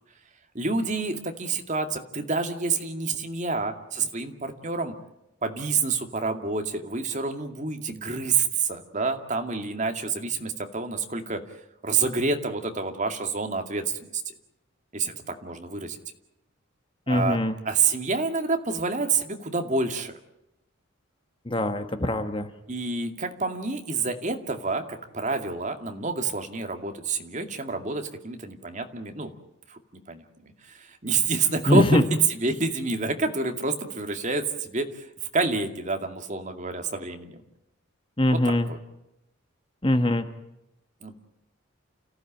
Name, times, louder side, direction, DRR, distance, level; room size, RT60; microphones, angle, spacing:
voice 1, 0.5-4.9 5.4-11.4 11.8-13.8 14.1-14.2 14.9-15.1 15.4-16.0 17.1-17.4 17.6-20.1 22.7-29.3 29.7-29.8 30.1-30.2 30.6-32.0 32.3-35.1 35.3-37.4 38.3-38.8 41.0-41.2, right 4 dB, 35° right, 5 dB, 2.4 m, -28 dB
voice 2, 17.1-17.6 21.4-22.5 31.7-32.0 38.2-38.7 39.8-40.3, left 1 dB, 25° left, 8 dB, 1.4 m, -22 dB
29.5 x 15.5 x 8.9 m, 0.88 s
head